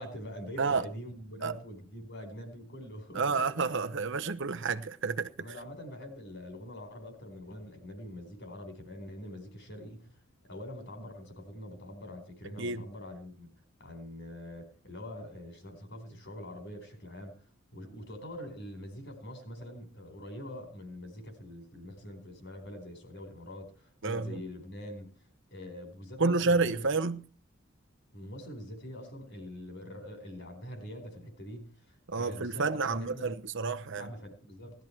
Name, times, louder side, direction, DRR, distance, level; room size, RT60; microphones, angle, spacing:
voice 1, 0.0-3.6 5.4-10.1 10.5-13.5 13.8-17.4 17.7-25.1 25.5-27.0 28.1-33.4 34.0-34.8, left 1 dB, 55° left, 4.3 m, -44 dB
voice 2, 0.6-0.9 1.4-1.6 3.1-5.3 12.6-12.8 24.0-24.4 26.2-27.2 32.1-34.1, right 4 dB, 60° right, 0.9 m, -30 dB
18.5 x 12.5 x 4.5 m
head